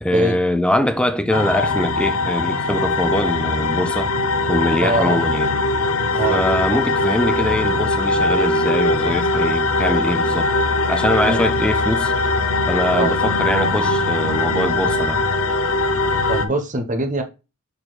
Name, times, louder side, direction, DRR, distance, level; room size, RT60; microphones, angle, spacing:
voice 1, 0.0-4.1 4.5-5.5 6.3-10.5 10.9-12.1 12.7-15.2, left 1 dB, 5° left, 0.6 m, -22 dB
sound 1, 1.3-16.5, left 2 dB, 75° left, 0.9 m, -20 dB
voice 2, 4.8-5.2 6.1-6.4 11.2-11.6 12.9-13.2 16.3-17.2, right 2 dB, 35° right, 1.3 m, -23 dB
6.7 x 4.3 x 4.3 m
head